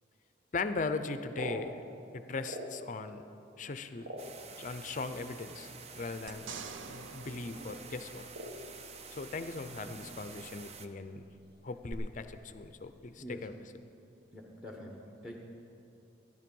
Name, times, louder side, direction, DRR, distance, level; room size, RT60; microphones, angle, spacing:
voice 1, 0.5-1.8 2.1-3.3 3.6-4.1 4.6-6.6 6.9-8.2 9.1-11.2 11.6-13.7, left 4 dB, 40° left, 10 dB, 0.5 m, -39 dB
sound 1, 1.3-3.1 3.5-4.9 5.7-5.8 6.1-6.4 6.7-7.1 7.4-7.6 8.3-9.3 9.6-10.5 10.7-10.8 11.2-11.5 12.0-12.4, equal, 55° right, 1.4 m, -44 dB
sound 2, 4.2-10.9, right 4 dB, 35° right, 0.6 m, -49 dB
sound 3, 6.3-8.8 11.9-12.0, right 4 dB, 90° right, 0.6 m, -47 dB
voice 2, 14.3-15.4, left 1 dB, 5° right, 0 dB, 1.1 m, -45 dB
14.0 x 10.5 x 5.4 m, 2.7 s
head